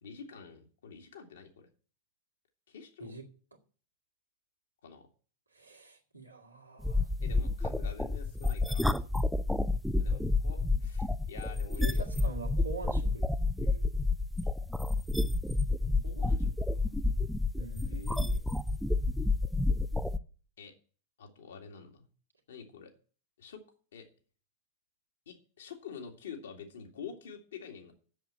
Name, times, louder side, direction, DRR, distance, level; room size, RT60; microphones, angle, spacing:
voice 1, 0.0-1.7 2.7-3.1 4.8-5.1 7.2-8.9 10.0-12.3 16.0-16.8 17.8-18.4 20.6-20.7 21.2-22.0 22.5-22.9 23.4-23.6 23.9-24.1 25.3-27.9, left 6 dB, 65° left, 3 dB, 2.1 m, -47 dB
voice 2, 5.5-7.1 11.8-13.3 13.6-13.9 14.6-14.7 17.6-18.0, right 3 dB, 85° right, -1 dB, 2.0 m, -44 dB
sound 1, 6.8-20.2, left 2 dB, ahead, 0.5 m, -29 dB
7.9 x 7.2 x 8.5 m, 0.41 s
figure-of-eight pair, 90°, 0 cm